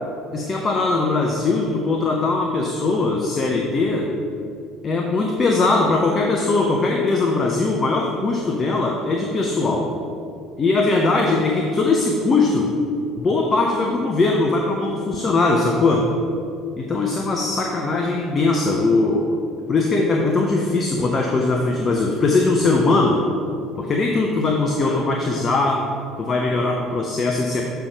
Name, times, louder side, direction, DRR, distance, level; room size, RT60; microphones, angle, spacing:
voice 1, 0.3-4.1 4.8-9.9 10.6-12.7 13.2-16.1 16.8-19.3 19.7-23.2 23.8-25.8 26.2-27.6, left 3 dB, 30° left, 1 dB, 0.6 m, -20 dB
6.9 x 3.4 x 6.1 m, 2.5 s
figure-of-eight pair, 60°, 0 cm